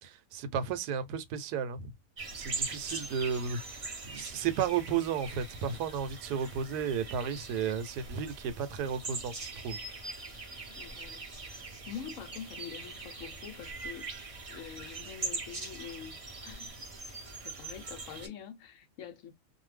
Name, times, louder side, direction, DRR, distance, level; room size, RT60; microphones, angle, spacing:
voice 1, 0.0-1.9 2.3-3.6 4.1-9.8, right 7 dB, 80° right, 1.2 m, -33 dB
sound 1, 2.2-18.3, right 3 dB, 55° right, 0.4 m, -42 dB
voice 2, 10.7-14.1 14.5-16.2 16.4-16.8 17.1-19.3, left 8 dB, 60° left, 0.9 m, -46 dB
2.6 x 2.3 x 3.2 m
omnidirectional pair, 1.7 m